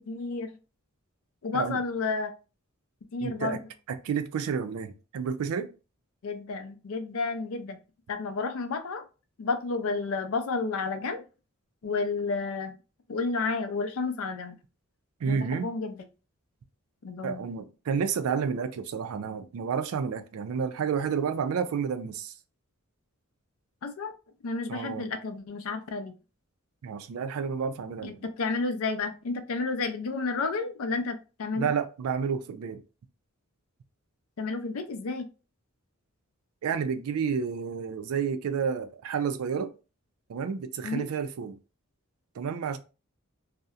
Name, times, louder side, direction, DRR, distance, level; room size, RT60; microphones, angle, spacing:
voice 1, 0.1-0.5 1.4-2.3 3.1-3.6 6.2-7.8 8.1-9.0 9.4-11.2 11.8-12.7 13.1-14.6 15.3-16.0 17.0-17.5 23.8-24.1 24.4-26.1 28.0-31.7 34.4-35.3 40.8-41.1, left 4 dB, 75° left, 0.4 m, -31 dB
voice 2, 3.2-3.6 3.9-5.7 15.2-15.7 17.2-22.3 24.7-25.1 26.8-28.2 31.5-32.8 36.6-39.7 40.3-41.6 42.4-42.8, right 6 dB, 80° right, 0.4 m, -30 dB
2.7 x 2.1 x 2.3 m
head